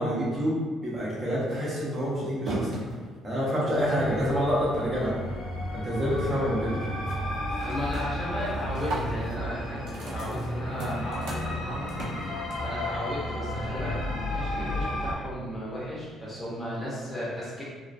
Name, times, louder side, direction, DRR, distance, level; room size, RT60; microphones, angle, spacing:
voice 1, 0.0-2.7 3.2-5.2 5.7-6.8, equal, 25° right, -7 dB, 0.6 m, -27 dB
sound 1, 1.1-5.7 6.0-6.4 6.7-7.2 7.5-12.8, right 2 dB, 75° right, 0.6 m, -38 dB
sound 2, 3.7-15.1, left 1 dB, 55° left, 0.5 m, -33 dB
voice 2, 7.6-11.9 12.3-17.6, left 1 dB, 15° left, -7 dB, 0.7 m, -35 dB
2.4 x 2.3 x 2.4 m, 1.5 s
cardioid pair, 145°, 0 cm